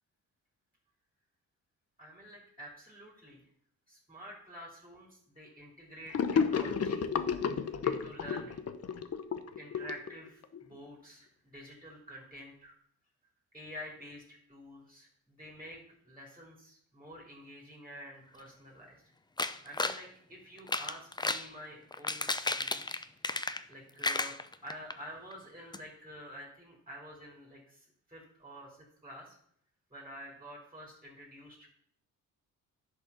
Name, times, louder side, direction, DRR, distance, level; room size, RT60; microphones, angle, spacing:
voice 1, 2.0-3.5 3.9-7.1 7.4-8.6 9.6-12.8 13.5-19.0 19.6-23.0 23.7-24.4 24.6-29.4 29.9-31.7, equal, 10° right, -2 dB, 3.6 m, -49 dB
Gurgling / Sink (filling or washing), 6.1-10.6, left 6 dB, 45° left, 0.9 m, -32 dB
sound 1, 19.4-20.0 20.6-21.5 21.9-23.7 24.0-24.9 25.3-25.4 25.7-25.8, left 2 dB, 10° left, 0.6 m, -33 dB
10.5 x 5.5 x 7.1 m, 0.67 s
cardioid pair, 90°, 35 cm